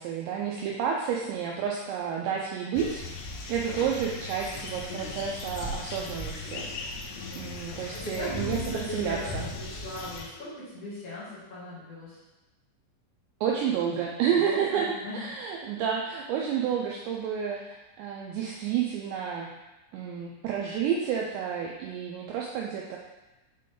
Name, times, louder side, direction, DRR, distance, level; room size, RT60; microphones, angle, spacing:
voice 1, 0.0-3.0 3.5-7.0 7.4-9.4 13.4-14.9 15.1-19.5 19.9-23.0, right 8 dB, 90° right, -1 dB, 2.5 m, -30 dB
sound 1, 2.7-10.3, left 3 dB, 90° left, 3.4 m, -37 dB
voice 2, 7.9-12.2 14.4-15.3, left 1 dB, 45° left, -10 dB, 2.1 m, -38 dB
7.4 x 3.8 x 3.7 m, 1.1 s
omnidirectional pair, 5.7 m